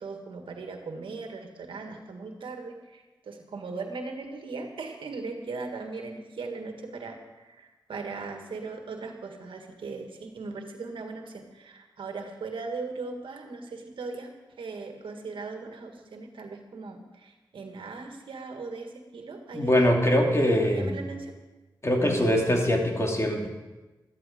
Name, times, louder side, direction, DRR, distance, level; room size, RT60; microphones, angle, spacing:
voice 1, 0.0-14.3 14.6-21.3, right 3 dB, 90° right, 4 dB, 1.7 m, -39 dB
voice 2, 19.5-21.0 21.8-23.5, equal, 35° left, 1 dB, 2.8 m, -23 dB
13.5 x 12.5 x 5.2 m, 1.1 s
cardioid pair, 50°, 8 cm